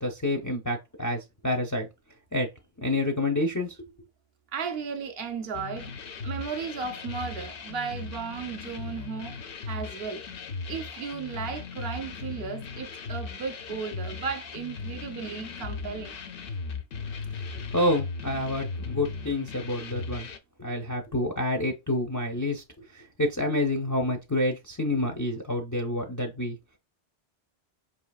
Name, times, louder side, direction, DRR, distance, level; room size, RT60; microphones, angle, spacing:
voice 1, 0.0-1.9 2.3-2.5 2.8-3.8 17.7-20.3 20.6-22.6 22.9-26.6, left 1 dB, 25° left, 0.4 m, -28 dB
voice 2, 4.5-5.9 6.2-9.4 9.7-10.2 10.7-16.2, right 6 dB, 65° right, 0.8 m, -35 dB
sound 1, 5.5-20.4, left 4 dB, 60° left, 0.7 m, -37 dB
4.8 x 2.8 x 2.3 m
omnidirectional pair, 1.1 m